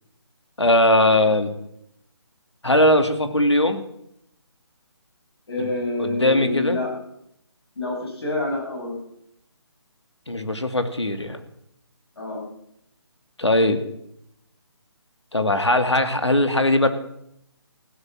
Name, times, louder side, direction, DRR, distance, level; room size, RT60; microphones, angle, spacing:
voice 1, 0.6-1.5 2.6-3.8 6.0-6.8 10.3-11.4 13.4-13.8 15.3-16.9, left 1 dB, 90° left, 8 dB, 2.3 m, -19 dB
voice 2, 5.5-6.9 7.8-9.0 12.2-12.5, left 2 dB, 65° left, 1 dB, 7.0 m, -27 dB
16.5 x 10.5 x 7.5 m, 0.75 s
figure-of-eight pair, 150°, 14 cm